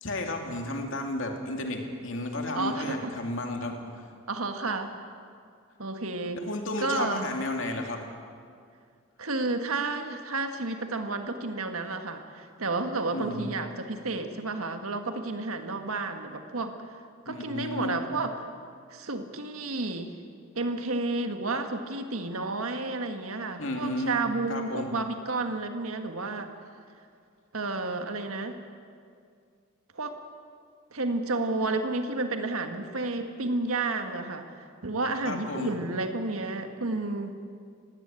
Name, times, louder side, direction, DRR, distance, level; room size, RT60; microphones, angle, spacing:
voice 1, 0.0-3.8 6.4-8.0 13.1-13.6 17.3-18.0 23.6-24.2 24.5-24.9 35.2-35.7, left 1 dB, 65° left, 2 dB, 2.7 m, -32 dB
voice 2, 2.5-3.1 4.3-4.9 5.8-6.4 6.8-7.3 9.2-16.8 17.2-18.5 18.9-20.1 20.5-26.5 27.5-28.6 29.9-30.2 30.9-34.5 34.8-37.4, right 3 dB, 85° right, 6 dB, 1.6 m, -31 dB
19.0 x 16.5 x 8.9 m, 2.2 s
head